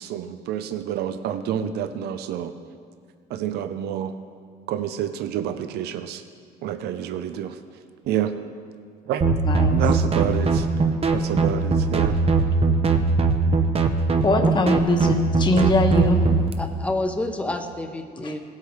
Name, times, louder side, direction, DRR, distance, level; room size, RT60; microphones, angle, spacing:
voice 1, 0.0-2.5 3.3-4.1 4.7-6.2 6.6-7.6 8.1-8.3 9.1-9.2 9.7-10.7 11.1-12.2, right 10 dB, 75° right, 9 dB, 0.6 m, -28 dB
sound 1, 9.2-16.5, right 3 dB, 35° right, 0.7 m, -21 dB
voice 2, 9.4-9.8 14.2-16.2 18.2-18.3, left 1 dB, 25° left, 4 dB, 1.2 m, -21 dB
voice 3, 16.6-18.4, left 2 dB, 5° left, 5 dB, 0.8 m, -28 dB
17.0 x 8.3 x 3.2 m, 2.1 s
cardioid pair, 110°, 17 cm